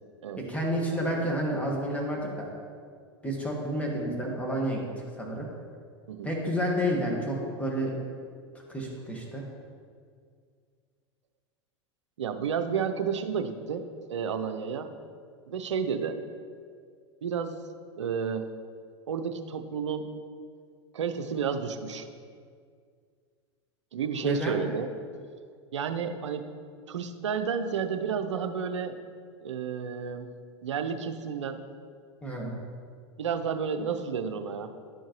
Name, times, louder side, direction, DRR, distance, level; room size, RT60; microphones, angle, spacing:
voice 1, 0.4-2.5 3.2-4.8 5.1-5.5 6.2-8.0 8.7-9.4 24.2-24.6 32.2-32.6, equal, 10° left, -2 dB, 1.6 m, -30 dB
voice 2, 12.2-14.9 15.5-16.2 17.2-17.6 18.0-18.5 19.1-20.1 20.9-22.1 23.9-24.9 25.7-26.5 26.9-29.0 29.4-30.3 30.6-31.7 33.2-34.7, right 6 dB, 85° right, 8 dB, 0.5 m, -31 dB
10.5 x 4.5 x 3.0 m, 2.1 s
hypercardioid pair, 95°, 15 cm